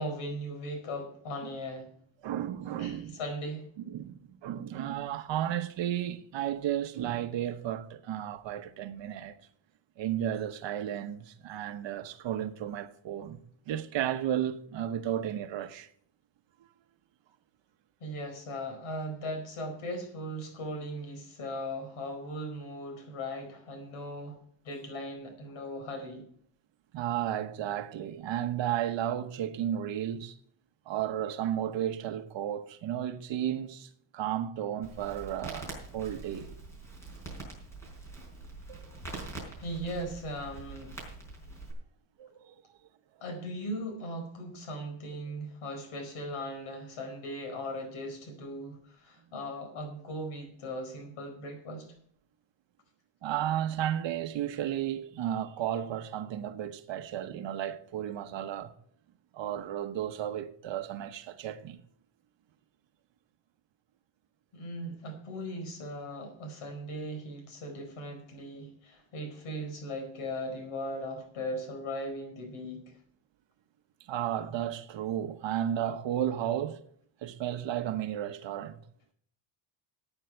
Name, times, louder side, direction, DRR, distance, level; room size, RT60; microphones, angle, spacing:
voice 1, 0.0-1.9 2.8-3.7 18.0-26.3 39.6-41.0 43.2-51.9 64.5-72.9, equal, 75° left, 4.8 m, -38 dB
voice 2, 2.2-3.2 3.9-9.4 10.0-15.9 26.9-30.4 30.9-36.5 38.7-39.0 42.2-42.5 53.2-58.7 59.3-61.8 74.1-76.8 77.2-78.8, right 11 dB, 60° right, 1.1 m, -33 dB
Crackle, 34.8-41.7, right 2 dB, 5° left, 4.4 m, -44 dB
15.0 x 9.1 x 4.5 m
cardioid pair, 175°, 50 cm